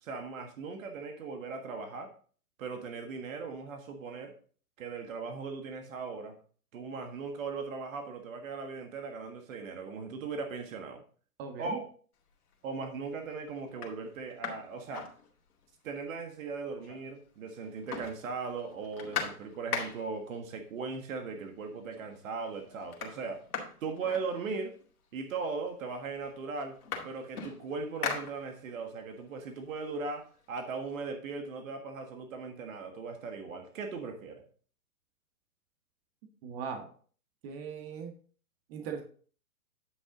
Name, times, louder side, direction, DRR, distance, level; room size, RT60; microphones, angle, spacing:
voice 1, 0.0-2.1 2.6-4.3 4.8-6.3 6.7-11.0 11.6-11.8 12.6-15.1 15.8-23.4 23.8-24.7 25.1-26.8 27.0-34.4, right 4 dB, 60° right, 4 dB, 1.7 m, -38 dB
voice 2, 11.4-11.8 36.4-36.9 37.4-38.1 38.7-39.0, right 6 dB, 40° right, 4 dB, 1.7 m, -39 dB
sound 1, 12.3-12.7 13.2-13.3 13.7-15.8 16.1-16.2 16.4-17.3 17.5-20.3 21.2-21.3 21.7-22.2 22.4-24.9 25.7-25.8 26.1-28.9 29.3-31.0, left 6 dB, 75° left, 2.3 m, -40 dB
9.4 x 5.9 x 3.8 m, 0.43 s
hypercardioid pair, 125°, 45 cm